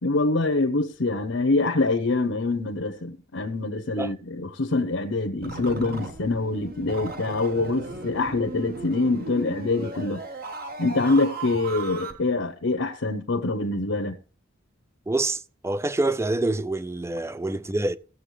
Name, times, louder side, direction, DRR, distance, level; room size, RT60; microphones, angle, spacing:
voice 1, 0.0-10.2 10.8-14.2, left 3 dB, 80° left, 0.9 m, -25 dB
sound 1, 5.4-12.1, right 3 dB, 50° right, 1.4 m, -36 dB
voice 2, 15.1-18.0, right 2 dB, 15° right, 0.4 m, -26 dB
17.0 x 7.1 x 3.3 m
head